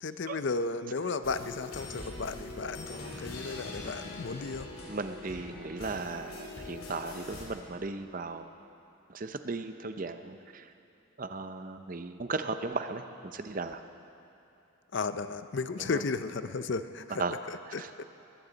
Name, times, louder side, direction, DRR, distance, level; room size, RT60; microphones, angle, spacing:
voice 1, 0.0-4.7 14.9-17.2 17.5-18.0, left 4 dB, 55° left, 11 dB, 0.5 m, -34 dB
sound 1, 1.2-7.5, left 2 dB, 90° left, 3.1 m, -43 dB
voice 2, 4.9-8.5 9.1-10.7 11.2-13.8 15.8-16.0 17.2-17.4 17.8-17.9, right 3 dB, 40° right, 9 dB, 0.6 m, -36 dB
20.0 x 16.0 x 4.0 m, 2.7 s
head